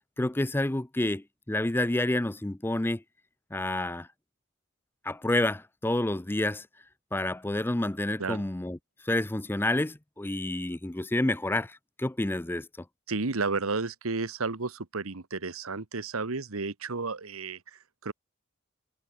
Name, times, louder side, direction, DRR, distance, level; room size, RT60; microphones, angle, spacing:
voice 1, 0.2-3.0 3.5-4.1 5.0-6.7 7.1-8.8 9.0-12.7, left 1 dB, 10° left, 0.5 m, -29 dB
voice 2, 13.1-18.1, right 4 dB, 80° right, 1.3 m, -32 dB
head